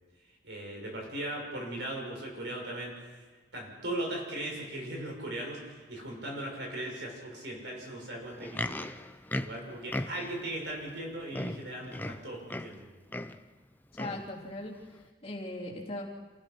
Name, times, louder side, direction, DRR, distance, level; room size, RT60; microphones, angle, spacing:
voice 1, 0.4-3.2 3.5-8.9 9.4-12.9, right 1 dB, 70° right, 0 dB, 6.4 m, -38 dB
Livestock farm animals working animals, 8.2-10.5 11.0-11.1 11.3-12.8 13.1-13.4 13.9-14.3 15.0-15.1, left 1 dB, 10° left, 0.5 m, -37 dB
voice 2, 13.9-16.0, left 1 dB, 35° left, -3 dB, 3.1 m, -39 dB
28.0 x 16.0 x 6.1 m, 1.3 s
head